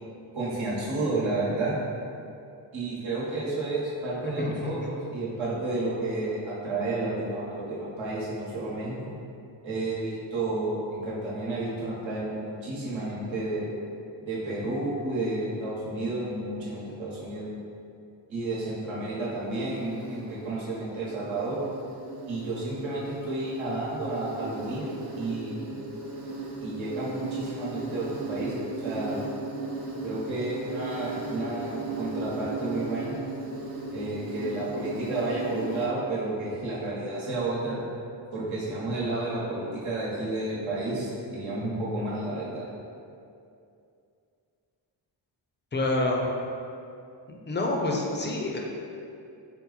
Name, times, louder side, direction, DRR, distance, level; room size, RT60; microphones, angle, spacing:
voice 1, 0.3-1.7 2.7-9.1 9.6-13.7 14.2-17.4 18.3-21.6 22.3-25.7 26.6-29.2 30.0-33.2 33.9-37.8 38.3-42.6, right 2 dB, 80° right, -7 dB, 1.2 m, -31 dB
voice 2, 4.2-4.9 45.7-46.3 47.3-48.6, left 2 dB, 25° left, -1 dB, 0.4 m, -28 dB
Insect, 19.2-35.9, right 2 dB, 55° right, 0.6 m, -37 dB
4.1 x 2.0 x 4.0 m, 2.6 s
wide cardioid pair, 130°, 46 cm